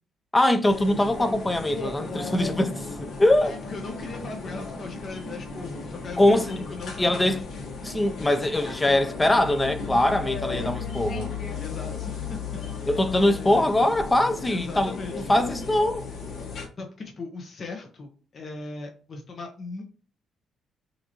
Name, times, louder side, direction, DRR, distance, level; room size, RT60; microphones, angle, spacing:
voice 1, 0.3-3.5 6.2-6.5 7.0-7.4 7.8-11.3 12.9-16.0, left 1 dB, 15° left, 0.7 m, -22 dB
sound 1, 0.7-16.7, left 4 dB, 70° left, 1.4 m, -35 dB
voice 2, 3.4-7.4 10.5-10.7 11.6-12.9 13.2-13.9 14.5-15.3 16.8-19.8, left 3 dB, 45° left, 1.0 m, -38 dB
5.8 x 2.7 x 2.9 m
cardioid pair, 90°, 0 cm